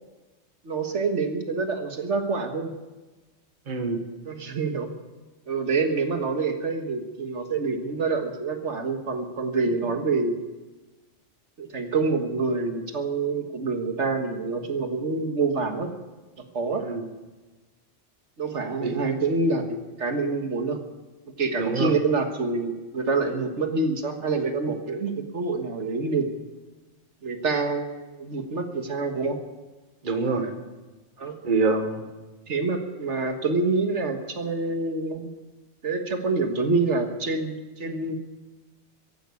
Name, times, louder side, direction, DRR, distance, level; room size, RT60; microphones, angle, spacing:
voice 1, 0.7-2.7 4.3-4.9 5.5-10.4 11.6-15.9 16.4-16.8 18.4-20.8 21.4-26.3 27.2-29.4 31.2-31.4 32.5-35.3 35.8-38.2, right 3 dB, 75° right, 5 dB, 1.9 m, -26 dB
voice 2, 3.7-4.0 16.8-17.0 18.8-19.0 21.6-21.9 30.0-30.5 31.4-32.0, right 4 dB, 45° right, 6 dB, 1.5 m, -25 dB
15.0 x 11.5 x 8.4 m, 1.2 s
omnidirectional pair, 1.2 m